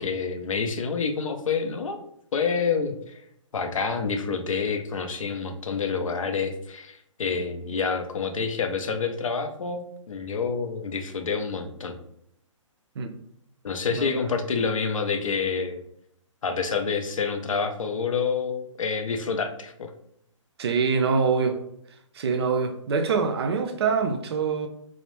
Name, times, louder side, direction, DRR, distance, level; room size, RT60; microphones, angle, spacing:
voice 1, 0.0-2.0 2.3-3.2 3.5-12.0 13.6-15.8 16.4-19.9, left 5 dB, 80° left, 0.5 m, -28 dB
voice 2, 14.0-14.3 20.6-21.6 22.1-24.7, right 5 dB, 50° right, 0.4 m, -25 dB
2.3 x 2.0 x 3.0 m
figure-of-eight pair, 135°, 17 cm